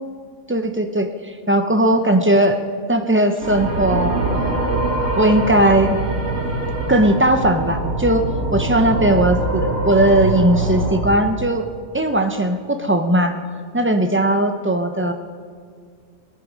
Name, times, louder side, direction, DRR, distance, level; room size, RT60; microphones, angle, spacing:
voice 1, 0.5-2.6 2.9-4.6 5.2-6.0 6.9-11.7 11.9-13.4 13.7-15.1, right 1 dB, 15° right, 6 dB, 0.6 m, -18 dB
sound 1, 3.4-11.0, right 2 dB, 75° right, 2.5 m, -23 dB
18.5 x 11.0 x 5.1 m, 2.1 s
omnidirectional pair, 1.3 m